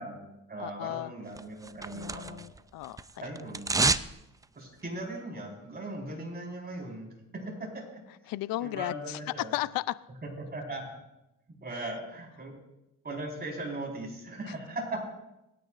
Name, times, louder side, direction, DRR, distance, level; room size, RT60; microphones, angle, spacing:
voice 1, 0.0-2.4 3.2-3.7 4.5-7.1 7.4-7.8 8.6-9.5 10.1-10.8 11.6-12.5 13.0-15.0, right 2 dB, 30° right, -1 dB, 4.6 m, -38 dB
voice 2, 0.6-1.1 1.9-3.3 3.9-4.0 8.3-9.2 9.5-10.0, left 16 dB, 75° left, 17 dB, 0.5 m, -35 dB
sound 1, 1.4-2.6 2.8-4.1 4.4-4.5, right 3 dB, 10° right, 0.3 m, -29 dB
26.0 x 9.5 x 2.5 m, 0.92 s
cardioid pair, 90°, 35 cm